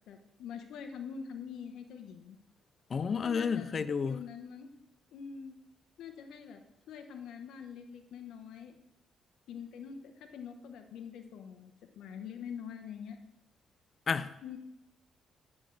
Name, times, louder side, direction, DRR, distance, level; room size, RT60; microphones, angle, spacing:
voice 1, 0.1-2.4 3.2-4.7 5.1-5.5 6.0-6.6 6.9-8.7 9.5-13.2 14.4-14.6, left 7 dB, 80° left, 1.1 m, -45 dB
voice 2, 2.9-4.2 14.1-14.3, left 6 dB, 45° left, 0.5 m, -31 dB
9.9 x 8.4 x 3.3 m
cardioid pair, 90°, 0 cm